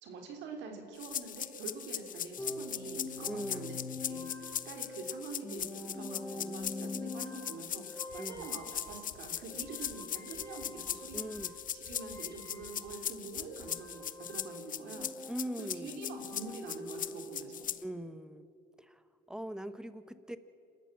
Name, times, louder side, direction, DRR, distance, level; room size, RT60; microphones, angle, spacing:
voice 1, 0.0-3.8 4.1-11.3 11.7-17.7, right 4 dB, 75° right, 3 dB, 3.4 m, -46 dB
sound 1, 1.0-17.8, left 9 dB, 45° left, 0.7 m, -40 dB
sound 2, 2.4-13.2 13.5-17.4, left 2 dB, 15° left, 3.0 m, -45 dB
voice 2, 3.3-3.7 8.2-8.5 11.1-11.5 15.3-16.0 17.8-18.5 18.8-20.4, right 1 dB, 5° right, 12 dB, 1.2 m, -41 dB
sound 3, 8.1-8.4 8.8-9.2 9.6-9.9 10.3-10.7 11.1-11.4 11.8-12.2 12.6-12.9 13.3-13.7, left 7 dB, 75° left, 3.2 m, -56 dB
27.5 x 13.5 x 7.4 m, 2.6 s
supercardioid pair, 80°, 19 cm